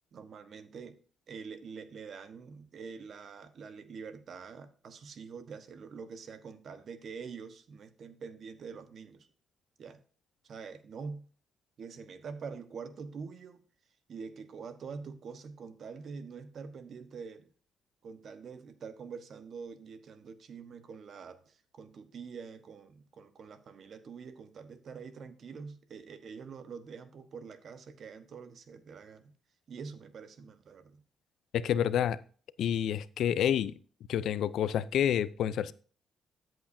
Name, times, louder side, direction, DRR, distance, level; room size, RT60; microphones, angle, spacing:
voice 1, 0.1-1.0 1.3-9.3 9.8-10.0 10.4-11.3 11.8-13.6 14.1-17.5 18.0-29.3 29.7-31.0, right 5 dB, 55° right, 1.3 m, -45 dB
voice 2, 31.5-32.2 32.6-33.8 34.1-35.7, left 9 dB, 75° left, 0.5 m, -28 dB
13.5 x 7.9 x 2.7 m
cardioid pair, 90°, 0 cm